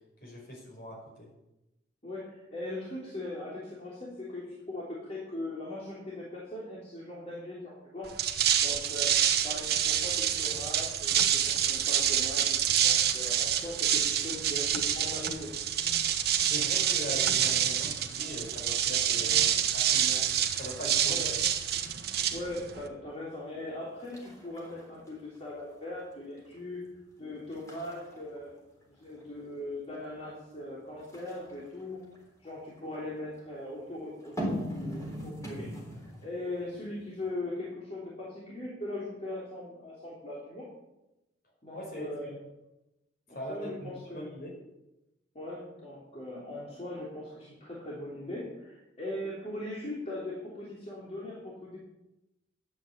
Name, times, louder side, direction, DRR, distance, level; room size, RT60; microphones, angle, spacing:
voice 1, 0.2-1.3 16.4-20.2 20.6-21.2 41.7-42.4 43.3-44.5, equal, 50° left, -1 dB, 5.3 m, -41 dB
voice 2, 2.0-8.1 8.6-9.2 9.4-15.5 19.2-19.3 21.1-21.4 22.3-26.8 27.2-28.5 28.9-32.1 32.4-35.7 36.0-40.7 41.6-42.3 43.3-44.3 45.3-51.8, left 1 dB, 35° left, -6 dB, 3.1 m, -40 dB
sound 1, 8.1-22.9, right 9 dB, 55° right, 1.1 m, -27 dB
sound 2, 23.4-23.7 24.0-25.7 26.1-26.6 27.0-27.2 27.5-29.4 31.0-32.9 34.2-36.4 36.7-36.8, equal, 15° left, 3.7 m, -40 dB
11.5 x 8.3 x 8.6 m, 0.94 s
head